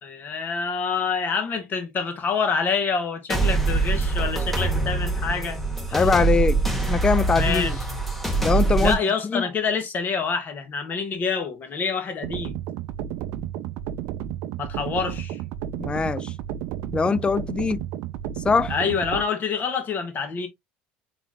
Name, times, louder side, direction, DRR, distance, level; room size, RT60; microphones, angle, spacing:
voice 1, 0.0-5.6 5.9-6.1 7.3-7.7 8.8-12.5 14.6-15.4 18.7-20.5, left 5 dB, 40° left, 1.5 m, -27 dB
sound 1, 3.3-8.9, right 3 dB, 5° left, 1.3 m, -23 dB
voice 2, 5.9-6.6 6.9-7.7 8.4-9.0 9.2-9.4 15.8-16.3 16.9-17.8 18.4-18.7, left 5 dB, 20° left, 0.3 m, -22 dB
sound 2, 12.2-19.2, right 11 dB, 70° right, 0.4 m, -32 dB
4.1 x 3.6 x 2.3 m
supercardioid pair, 90°, 5 cm